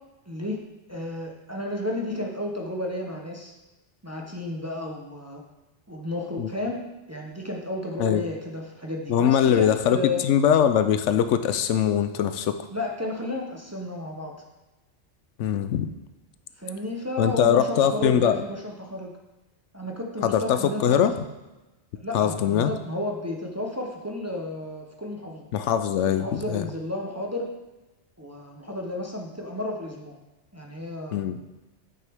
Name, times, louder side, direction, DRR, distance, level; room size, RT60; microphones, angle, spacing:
voice 1, 0.3-0.6 0.9-3.5 4.0-5.4 5.9-6.8 7.1-10.2 12.7-14.4 16.6-19.1 19.7-21.1 22.0-25.5 26.0-27.5 28.2-30.2 30.5-31.3, left 1 dB, 15° right, 0 dB, 0.7 m, -32 dB
voice 2, 9.1-10.0 10.2-12.7 15.4-15.9 17.2-18.4 20.2-21.1 22.1-22.7 25.5-26.7 31.1-31.5, left 9 dB, 80° left, 10 dB, 0.9 m, -22 dB
8.3 x 6.4 x 3.5 m, 1.1 s
omnidirectional pair, 1.2 m